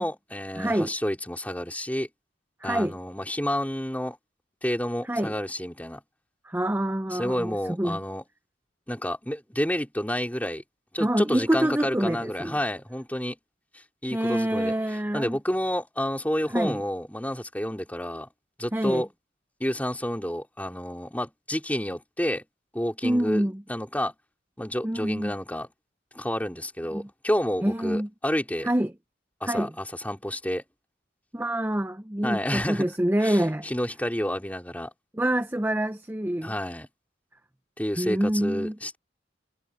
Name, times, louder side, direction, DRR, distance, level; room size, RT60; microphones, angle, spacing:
voice 1, 0.0-2.1 2.6-4.2 4.6-6.0 7.1-8.2 8.9-10.6 10.9-13.4 14.0-14.7 15.1-18.3 18.6-19.1 19.6-22.4 22.7-23.4 23.7-24.1 24.6-25.7 26.1-28.7 29.4-30.6 32.2-32.9 33.2-34.9 36.4-36.9 37.8-39.0, equal, 10° left, 3.9 m, -29 dB
voice 2, 0.6-0.9 2.6-3.0 5.0-5.3 6.4-8.0 11.0-12.6 14.1-15.4 16.5-16.8 18.7-19.0 23.0-23.6 24.8-25.3 26.9-27.1 27.6-28.1 28.6-28.9 29.4-29.7 31.3-33.7 35.1-36.5 38.0-38.8, right 1 dB, 10° right, 0.6 m, -26 dB
head